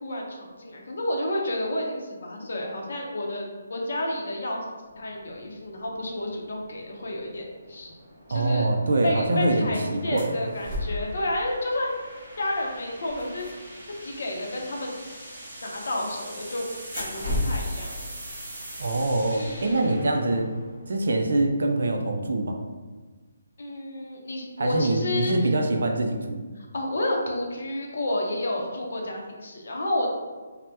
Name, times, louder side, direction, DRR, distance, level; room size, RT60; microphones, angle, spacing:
voice 1, 0.0-4.6 5.0-8.0 8.3-8.7 9.0-11.9 12.4-13.5 14.0-15.0 15.6-16.6 16.9-18.1 19.3-20.1 23.6-25.5 26.6-30.1, left 1 dB, 55° left, 0 dB, 0.6 m, -30 dB
sound 1, 4.9-21.1, right 1 dB, 35° right, 0.8 m, -44 dB
voice 2, 8.3-10.4 18.8-20.5 20.9-22.6 24.6-26.4, right 2 dB, 55° right, 3 dB, 0.3 m, -24 dB
sound 2, 10.2-11.2 12.3-12.5 12.7-14.2 15.7-16.2 16.8-19.9, left 1 dB, 10° right, 0.8 m, -34 dB
2.7 x 2.0 x 3.3 m, 1.4 s
hypercardioid pair, 180°, 0 cm